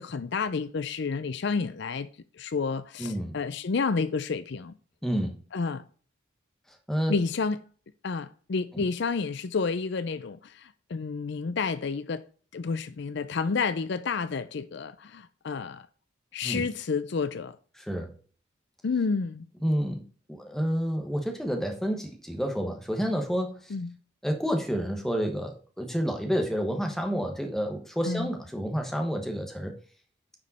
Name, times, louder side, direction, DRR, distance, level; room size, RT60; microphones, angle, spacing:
voice 1, 0.0-2.1 2.4-4.7 5.5-5.8 7.1-7.6 8.0-12.2 12.5-15.9 16.3-17.6 18.8-19.4 23.7-23.9 28.1-28.3, left 4 dB, 55° left, 0.5 m, -30 dB
voice 2, 3.0-3.4 5.0-5.4 6.9-7.1 8.7-8.8 16.4-16.7 17.8-18.1 19.6-20.0 20.3-23.7 24.2-29.8, equal, ahead, 1.2 m, -29 dB
9.6 x 5.2 x 4.1 m
head